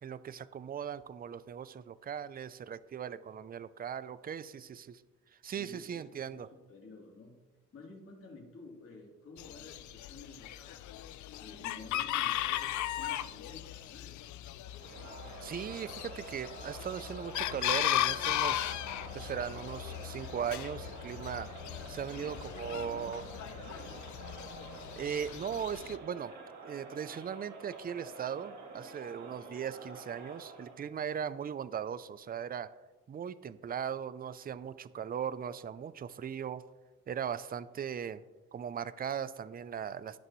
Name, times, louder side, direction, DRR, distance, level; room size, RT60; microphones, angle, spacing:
voice 1, 0.0-5.0 5.4-6.5 15.4-18.7 19.1-21.5 21.9-23.2 25.0-26.3 26.6-32.7 33.1-36.6 37.1-38.2 38.5-40.2, right 8 dB, 30° right, 16 dB, 0.5 m, -38 dB
voice 2, 5.5-7.4 7.7-10.9 11.4-14.2 22.1-24.0, left 3 dB, 50° left, -2 dB, 3.2 m, -52 dB
Chicken rooster, 9.4-26.0, left 13 dB, 70° left, 0.5 m, -37 dB
Crowd, 14.6-30.9, right 3 dB, 65° right, 2.5 m, -48 dB
16.0 x 6.5 x 3.1 m, 1.2 s
cardioid pair, 90°, 30 cm